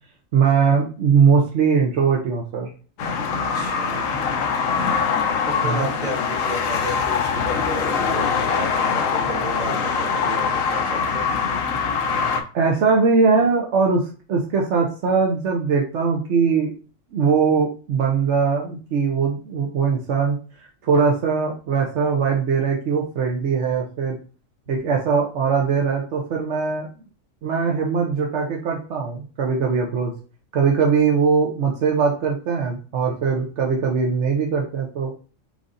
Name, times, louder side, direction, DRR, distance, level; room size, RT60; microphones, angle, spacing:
voice 1, 0.3-2.7 5.6-5.8 12.5-16.7 17.1-20.4 20.8-24.2 24.7-26.9 27.4-30.1 30.5-35.1, right 5 dB, 65° right, -1 dB, 1.0 m, -21 dB
sound 1, 3.0-12.4, left 5 dB, 80° left, 1.1 m, -23 dB
voice 2, 3.5-4.2 5.2-11.3 24.6-24.9, right 1 dB, 35° right, 1 dB, 1.3 m, -33 dB
4.8 x 3.8 x 2.6 m, 0.38 s
omnidirectional pair, 1.4 m